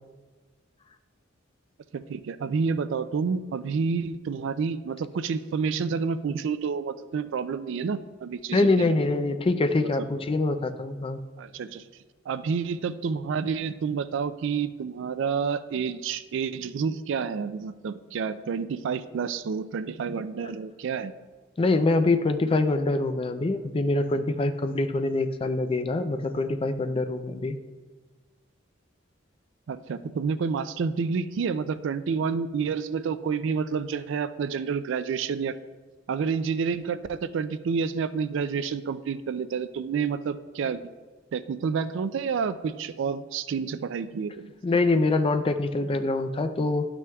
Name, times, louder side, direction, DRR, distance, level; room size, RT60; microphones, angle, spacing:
voice 1, 1.9-9.0 11.4-11.9 12.3-21.1 29.7-35.6 36.1-40.8 41.3-44.5, right 5 dB, 65° right, 13 dB, 0.3 m, -29 dB
voice 2, 8.5-11.2 21.6-27.6 44.6-46.9, left 2 dB, 30° left, 9 dB, 0.4 m, -24 dB
12.0 x 6.1 x 2.3 m, 1.4 s
head